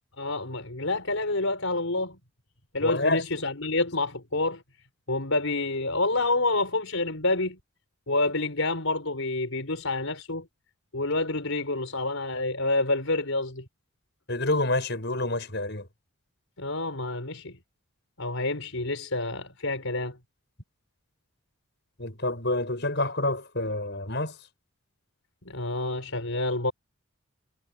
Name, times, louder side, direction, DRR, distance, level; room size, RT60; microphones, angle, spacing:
voice 1, 0.2-2.2 2.7-4.6 5.1-7.6 8.1-10.5 10.9-13.6 16.6-17.6 18.2-20.2 25.4-26.7, left 2 dB, 70° left, 4.7 m, -28 dB
voice 2, 2.8-3.2 14.3-15.9 22.0-24.3, left 2 dB, 50° left, 7.0 m, -27 dB
head